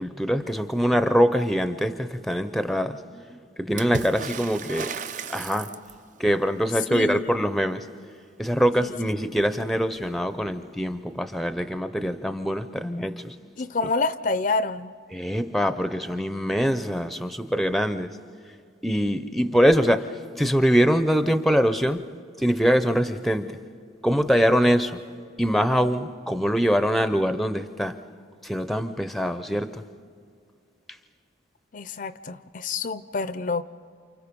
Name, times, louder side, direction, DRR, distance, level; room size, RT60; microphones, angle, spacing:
voice 1, 0.0-4.9 5.3-5.7 6.2-7.9 8.4-13.3 15.1-18.2 18.8-22.0 22.4-23.5 24.0-25.0 25.4-28.0 28.4-29.8, equal, ahead, 10 dB, 0.6 m, -23 dB
Water / Splash splatter, 3.8-6.2 9.4-9.5 9.8-10.6 11.7-11.8, right 5 dB, 45° right, 0.5 m, -35 dB
voice 2, 6.9-7.3 8.8-9.1 13.6-14.9 31.7-33.6, left 3 dB, 45° left, 13 dB, 0.5 m, -28 dB
29.0 x 28.5 x 5.3 m, 2.3 s
head